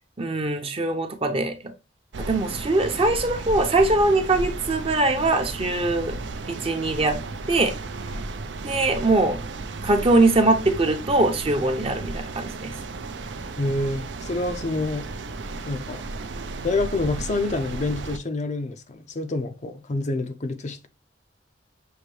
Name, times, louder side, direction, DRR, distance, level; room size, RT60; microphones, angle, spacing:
voice 1, 0.0-1.5 2.2-6.2 6.5-7.2 7.5-7.7 8.6-9.4 9.8-12.7, right 2 dB, 30° right, 0.7 m, -22 dB
sound 1, 2.1-18.2, right 3 dB, 65° right, 0.5 m, -34 dB
voice 2, 13.6-15.1 15.7-16.0 16.6-20.9, left 2 dB, 40° left, 0.5 m, -27 dB
6.4 x 2.7 x 3.1 m
head